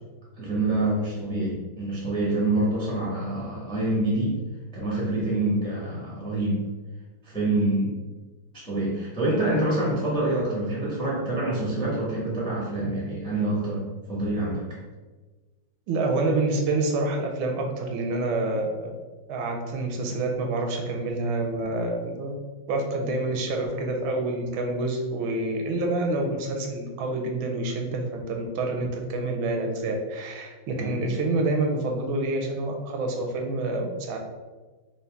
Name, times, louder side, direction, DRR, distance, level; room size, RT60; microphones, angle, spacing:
voice 1, 0.4-4.4 4.7-6.6 7.2-8.0 8.6-14.6 30.8-30.9, right 2 dB, 5° left, -6 dB, 0.3 m, -26 dB
voice 2, 15.9-18.9 19.3-22.4 22.7-34.2, right 2 dB, 85° right, 2 dB, 1.4 m, -27 dB
4.0 x 2.5 x 3.3 m, 1.3 s
omnidirectional pair, 2.2 m